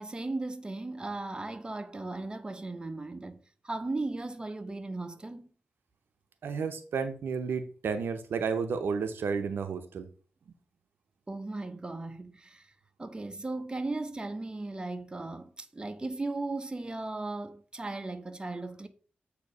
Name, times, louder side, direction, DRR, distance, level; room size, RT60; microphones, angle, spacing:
voice 1, 0.0-5.5 11.3-12.7 13.0-18.9, right 2 dB, 25° right, 0.8 m, -37 dB
voice 2, 6.4-10.1, right 5 dB, 85° right, 0.6 m, -32 dB
7.9 x 2.8 x 5.3 m
cardioid pair, 60°, 4 cm